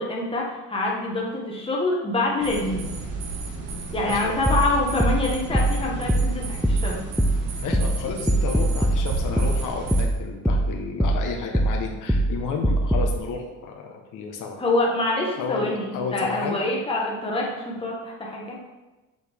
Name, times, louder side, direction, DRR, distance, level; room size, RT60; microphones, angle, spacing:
voice 1, 0.0-2.9 3.9-7.0 14.6-15.9 16.1-18.6, left 2 dB, 15° left, -3 dB, 1.3 m, -26 dB
sound 1, 2.4-10.1, right 3 dB, 80° right, 1.4 m, -33 dB
voice 2, 4.0-4.3 7.6-14.6 15.4-16.6, left 4 dB, 75° left, 1 dB, 1.1 m, -32 dB
sound 2, 4.5-13.2, right 1 dB, ahead, 0.3 m, -23 dB
6.9 x 6.4 x 3.5 m, 1.1 s
cardioid pair, 150°, 32 cm